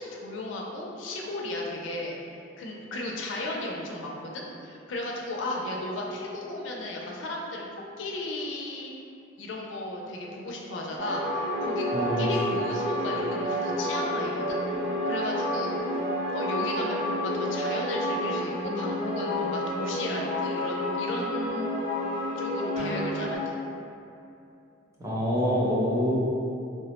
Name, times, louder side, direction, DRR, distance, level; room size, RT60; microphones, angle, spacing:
voice 1, 0.0-2.1 2.6-7.7 8.0-8.9 9.4-14.6 15.0-16.0 16.3-21.7 22.4-23.5, left 1 dB, 75° left, -1 dB, 0.4 m, -35 dB
sound 1, 11.0-23.4, equal, 40° right, 1.0 m, -29 dB
voice 2, 11.9-12.3 25.0-26.1, equal, 15° right, -8 dB, 0.5 m, -26 dB
3.3 x 2.0 x 2.9 m, 2.6 s
head